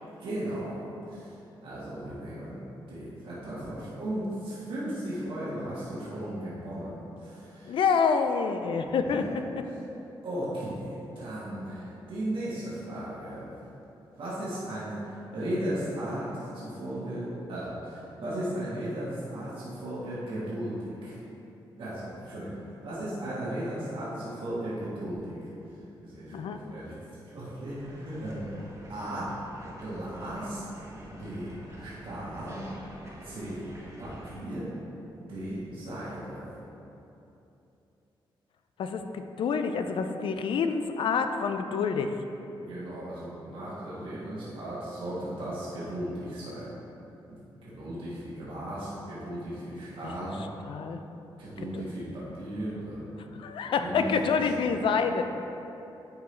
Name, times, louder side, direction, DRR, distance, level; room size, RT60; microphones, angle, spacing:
voice 1, 0.2-7.8 9.0-9.4 10.2-13.5 14.2-21.1 21.8-25.4 26.0-29.3 29.8-30.6 31.1-32.6 33.2-33.7 34.0-34.7 35.2-36.5 42.6-46.7 47.3-47.4 47.6-50.4 51.4-53.1 53.7-54.7, right 1 dB, 70° right, -9 dB, 1.5 m, -36 dB
voice 2, 7.7-9.6 26.3-26.6 38.8-42.1 50.2-50.3 50.7-51.0 51.7-51.8 53.4-55.3, left 5 dB, 70° left, 7 dB, 0.4 m, -27 dB
sound 1, 27.6-34.4, right 1 dB, 35° right, 1.3 m, -47 dB
9.8 x 3.7 x 3.3 m, 2.9 s
cardioid pair, 100°, 9 cm